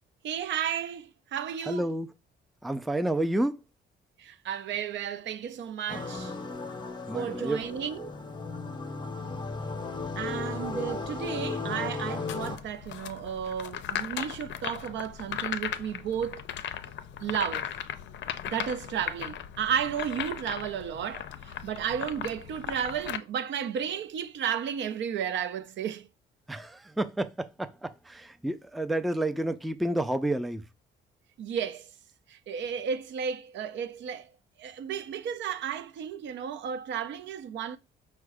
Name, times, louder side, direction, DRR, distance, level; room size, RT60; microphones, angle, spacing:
voice 1, 0.2-1.9 4.2-6.3 7.1-8.1 10.2-16.4 17.2-17.7 18.5-26.1 31.4-31.9 32.3-34.3 34.6-37.8, right 8 dB, 65° right, 0.5 m, -33 dB
voice 2, 1.7-2.1 2.6-3.6 7.1-7.6 26.5-30.6, right 1 dB, ahead, 0.3 m, -30 dB
sound 1, 5.9-12.6, left 4 dB, 20° left, 0.7 m, -35 dB
sound 2, 12.2-23.2, left 10 dB, 65° left, 0.5 m, -37 dB
4.6 x 2.2 x 4.7 m
cardioid pair, 90°, 20 cm